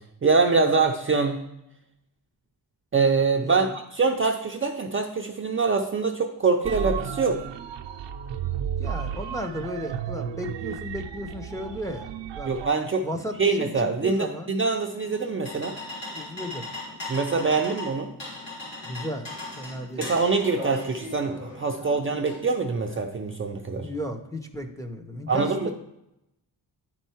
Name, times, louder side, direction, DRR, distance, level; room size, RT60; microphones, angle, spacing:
voice 1, 0.2-1.4 2.9-3.7 3.9-7.4 12.4-13.1 13.4-15.7 17.1-18.1 20.0-23.9 25.3-25.7, right 4 dB, 30° right, 2 dB, 0.5 m, -24 dB
voice 2, 3.4-3.7 8.8-12.1 12.4-12.5 13.0-14.5 16.1-16.6 18.8-19.3 19.6-20.1 23.8-25.7, equal, 10° left, 2 dB, 0.6 m, -34 dB
sound 1, 6.6-12.7, right 8 dB, 85° right, 0.6 m, -33 dB
sound 2, 15.0-23.0, left 2 dB, 90° left, 3.3 m, -39 dB
10.0 x 4.5 x 4.4 m, 0.85 s
wide cardioid pair, 155°, 43 cm